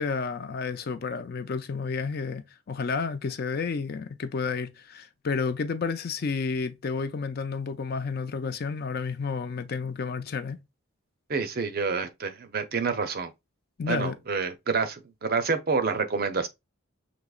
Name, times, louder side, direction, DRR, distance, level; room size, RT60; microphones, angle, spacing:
voice 1, 0.0-10.6 13.8-14.2, left 5 dB, 45° left, 0.4 m, -31 dB
voice 2, 11.3-13.3 13.9-16.5, right 4 dB, 45° right, 0.5 m, -28 dB
6.1 x 2.9 x 2.3 m
head